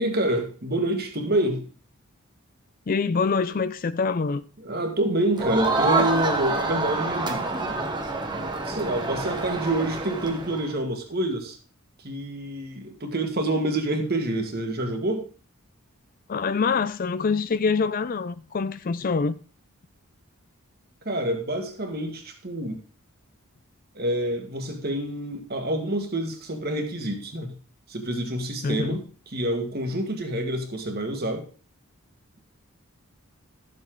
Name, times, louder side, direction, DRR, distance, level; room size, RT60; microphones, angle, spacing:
voice 1, 0.0-1.6 4.6-7.4 8.6-11.6 12.0-15.3 21.0-22.8 24.0-27.5 27.9-31.5, right 1 dB, 45° right, 1.9 m, -27 dB
voice 2, 2.9-4.4 16.3-19.4 28.6-29.0, left 5 dB, 40° left, 0.4 m, -25 dB
Crowd, 5.4-10.7, right 3 dB, 20° right, 1.1 m, -27 dB
13.0 x 7.5 x 3.8 m
head